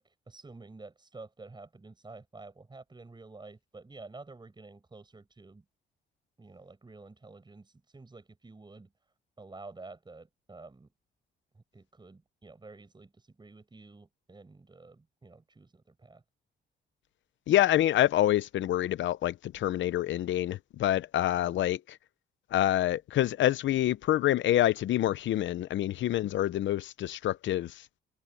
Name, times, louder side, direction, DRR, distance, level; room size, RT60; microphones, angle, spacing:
voice 1, 0.0-5.6 6.4-8.9 9.4-10.9 11.5-16.2 21.3-21.6, right 3 dB, 20° right, 7.2 m, -50 dB
voice 2, 17.5-22.0 22.5-27.7, left 13 dB, 70° left, 0.8 m, -27 dB
cardioid pair, 90°, 20 cm